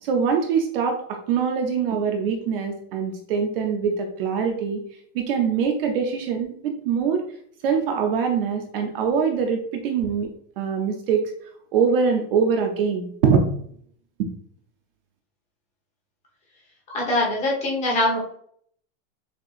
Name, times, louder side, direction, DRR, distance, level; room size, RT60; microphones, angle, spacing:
voice 1, 0.0-4.8 5.1-7.2 7.6-10.3 10.6-11.2 11.7-13.5 14.2-14.3, right 6 dB, 45° right, 3 dB, 0.5 m, -23 dB
voice 2, 16.9-18.2, left 1 dB, 15° left, -2 dB, 0.9 m, -23 dB
6.6 x 2.8 x 2.4 m, 0.63 s
supercardioid pair, 180°, 41 cm